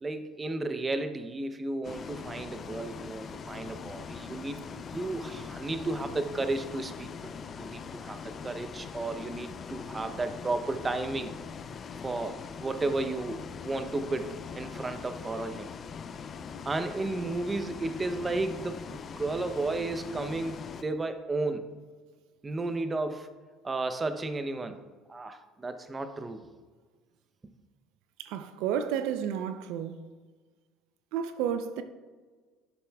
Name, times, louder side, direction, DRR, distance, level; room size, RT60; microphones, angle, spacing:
voice 1, 0.0-11.3 12.0-15.7 16.7-21.7 22.4-23.3 23.6-24.8 25.1-26.4, right 2 dB, 25° right, 0.6 m, -33 dB
Bus, 1.8-20.8, left 6 dB, 40° left, 0.4 m, -42 dB
voice 2, 28.2-30.0 31.1-31.8, right 8 dB, 75° right, 0.4 m, -31 dB
10.5 x 6.7 x 2.3 m
supercardioid pair, 85°, 0 cm